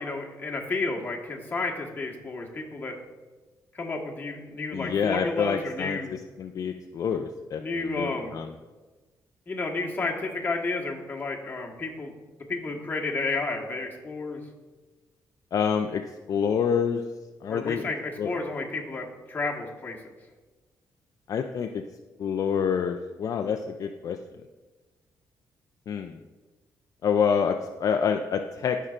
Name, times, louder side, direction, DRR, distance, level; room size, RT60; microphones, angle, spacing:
voice 1, 0.0-2.9 3.7-6.1 7.6-8.3 9.5-12.1 12.5-14.4 17.5-20.0, left 3 dB, 25° left, -1 dB, 1.4 m, -31 dB
voice 2, 4.7-8.5 15.5-16.0 16.3-17.0 17.4-17.9 18.2-18.3 21.3-21.8 22.2-24.2 25.9-26.2 27.0-28.8, left 7 dB, 55° left, 6 dB, 0.4 m, -27 dB
14.5 x 5.5 x 2.5 m, 1.3 s
cardioid pair, 115°, 7 cm